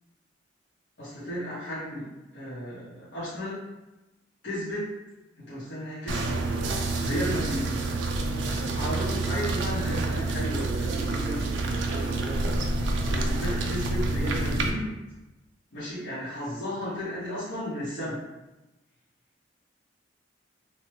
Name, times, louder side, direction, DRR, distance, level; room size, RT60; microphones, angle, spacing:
voice 1, 1.0-2.1 2.3-3.6 4.4-4.9 5.4-6.4 7.0-7.8 8.5-12.8 13.0-14.9 15.7-18.2, equal, 70° left, -11 dB, 0.9 m, -34 dB
sound 1, 6.1-14.7, right 2 dB, 70° right, 0.4 m, -28 dB
3.1 x 2.1 x 3.1 m, 1.0 s
head